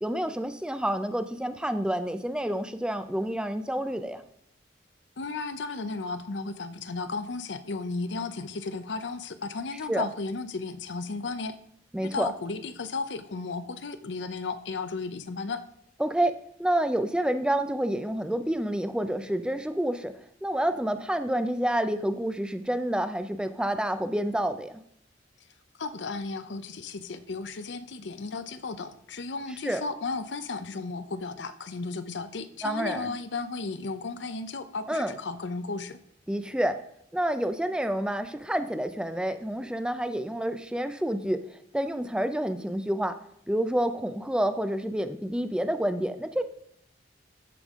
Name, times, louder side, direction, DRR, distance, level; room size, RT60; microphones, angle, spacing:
voice 1, 0.0-4.2 9.9-10.1 11.9-12.3 16.0-16.3 16.6-20.1 20.4-24.8 29.6-29.8 32.6-33.1 34.9-35.1 36.3-36.8 37.1-41.4 41.7-43.2 43.5-46.4, right 1 dB, 5° right, 10 dB, 0.5 m, -28 dB
voice 2, 5.2-11.6 12.0-15.6 25.8-36.0, left 3 dB, 75° left, 11 dB, 0.6 m, -34 dB
13.5 x 5.4 x 3.6 m, 0.72 s
head